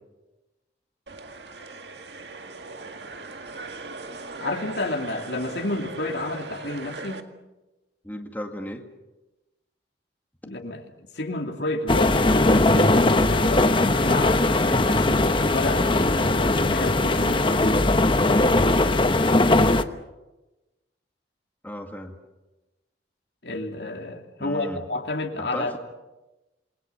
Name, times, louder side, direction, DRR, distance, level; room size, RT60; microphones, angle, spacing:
sound 1, 1.1-7.2, right 3 dB, 75° right, 1.9 m, -39 dB
voice 1, 4.4-7.3 10.4-17.8 23.4-25.8, left 2 dB, 75° left, 3 dB, 2.9 m, -31 dB
voice 2, 8.0-8.8 21.6-22.2 24.4-24.8 25.4-25.8, left 1 dB, 10° left, 3 dB, 2.1 m, -35 dB
sound 2, 11.9-19.8, left 2 dB, 30° left, 1.0 m, -20 dB
28.0 x 21.5 x 7.0 m, 1.1 s
head